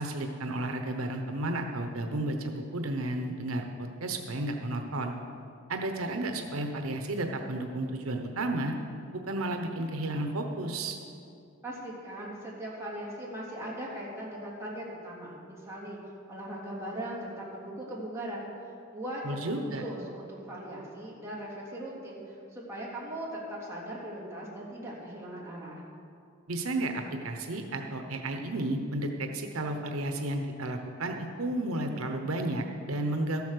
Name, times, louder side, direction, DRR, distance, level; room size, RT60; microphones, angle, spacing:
voice 1, 0.0-5.1 5.7-8.7 9.1-11.0 19.2-19.8 26.5-33.4, right 1 dB, 85° right, 4 dB, 0.9 m, -32 dB
voice 2, 11.6-16.0 16.3-18.5 18.9-23.3 23.6-25.8, right 1 dB, 15° right, -6 dB, 3.0 m, -39 dB
13.5 x 8.3 x 6.6 m, 2.5 s
head